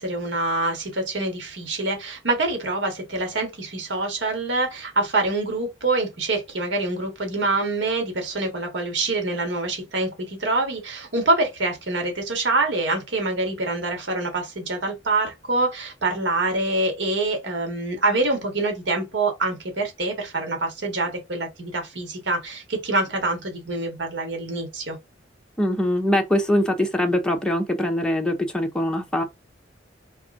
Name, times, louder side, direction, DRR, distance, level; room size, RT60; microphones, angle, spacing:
voice 1, 0.0-25.0, right 2 dB, 80° right, 1.7 m, -25 dB
voice 2, 25.6-29.2, left 1 dB, 5° left, 0.7 m, -22 dB
3.5 x 3.2 x 3.7 m
head